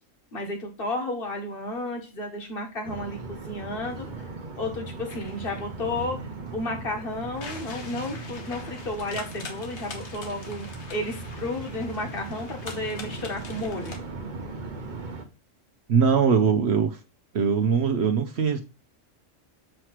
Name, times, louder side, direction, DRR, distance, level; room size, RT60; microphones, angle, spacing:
voice 1, 0.3-4.3 4.6-6.2 6.5-13.9, left 2 dB, 45° left, 1.7 m, -32 dB
Underneath Highway, 2.8-15.3, right 3 dB, 40° right, 1.0 m, -38 dB
sound 1, 5.1-14.0, left 4 dB, 60° left, 1.5 m, -43 dB
voice 2, 15.9-17.0 17.3-18.6, right 6 dB, 60° right, 0.9 m, -21 dB
7.6 x 3.1 x 5.7 m
omnidirectional pair, 1.3 m